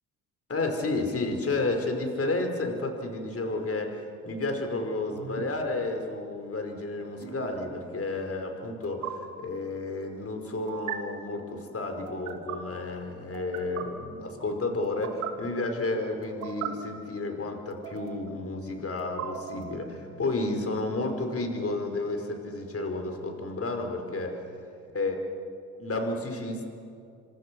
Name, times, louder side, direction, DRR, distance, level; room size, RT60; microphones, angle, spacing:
voice 1, 0.5-24.4 24.9-25.1 25.8-26.7, left 2 dB, 35° left, 4 dB, 5.0 m, -31 dB
sound 1, 5.2-5.4 7.2-7.5 8.8-9.1 10.7-11.0 12.1-12.6 13.3-13.8 14.8-15.3 16.2-16.7 17.7-18.3 19.0-19.8, right 11 dB, 85° right, 2.2 m, -38 dB
29.5 x 25.5 x 6.3 m, 2.5 s
hypercardioid pair, 55°, 41 cm